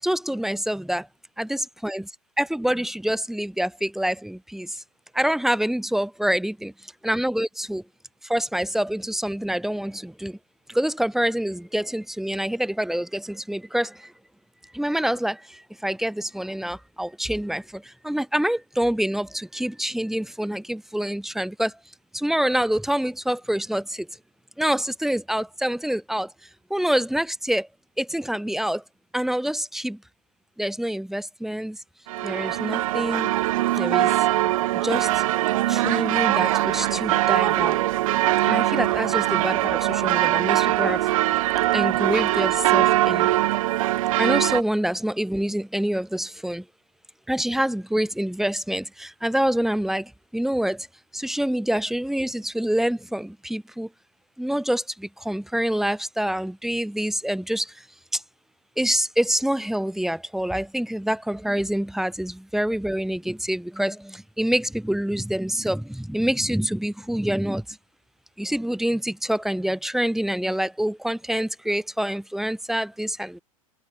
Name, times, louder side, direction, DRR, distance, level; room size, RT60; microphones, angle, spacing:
voice 1, 0.0-1.1 1.4-2.1 2.4-4.8 5.1-6.7 7.0-7.8 8.2-10.4 10.7-14.1 14.7-21.8 22.1-24.1 24.6-26.3 26.7-27.7 28.0-28.8 29.1-30.0 30.6-31.8 32.2-33.3 33.8-34.3 34.8-35.2 35.7-37.8 38.5-41.1 41.7-43.3 44.2-46.6 47.3-50.9 51.1-53.9 54.4-57.8 58.1-58.2 58.8-67.8 68.4-73.4, right 1 dB, ahead, 7.7 m, -26 dB
sound 1, 32.1-44.6, right 16 dB, 70° right, 2.2 m, -22 dB
hypercardioid pair, 100°, 18 cm